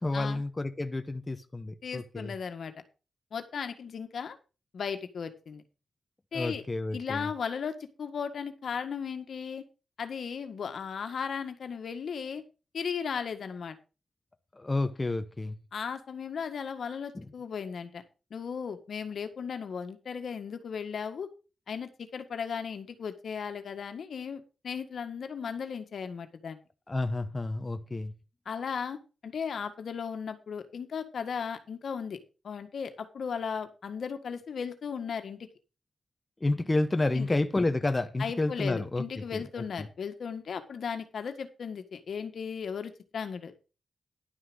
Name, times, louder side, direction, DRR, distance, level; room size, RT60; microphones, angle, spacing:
voice 1, 0.0-2.3 6.3-7.3 14.6-15.5 17.1-17.2 26.9-28.1 36.4-39.4, left 2 dB, 25° left, 0.9 m, -30 dB
voice 2, 1.8-2.7 3.3-4.4 4.7-5.6 6.3-6.6 6.9-9.6 10.0-12.4 12.7-13.8 15.7-18.0 18.3-21.3 21.7-26.6 28.4-29.0 29.2-32.2 32.4-35.5 37.1-37.3 38.2-43.6, left 6 dB, 70° left, 1.6 m, -36 dB
11.5 x 5.9 x 6.2 m
cardioid pair, 70°, 0 cm